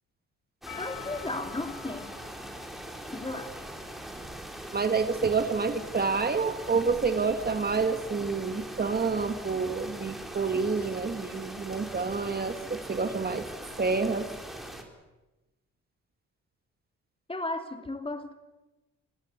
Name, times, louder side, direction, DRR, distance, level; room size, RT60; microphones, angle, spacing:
sound 1, 0.6-14.8, right 1 dB, ahead, 4.1 m, -42 dB
Percussion, 0.7-5.2, left 13 dB, 80° left, 2.8 m, -48 dB
voice 1, 0.8-2.2 3.1-3.7 17.3-18.3, left 2 dB, 20° left, 7 dB, 2.7 m, -35 dB
voice 2, 4.7-13.4 13.8-14.3, right 4 dB, 30° right, 8 dB, 2.1 m, -28 dB
25.0 x 18.5 x 8.3 m, 1.1 s
cardioid pair, 90°, 30 cm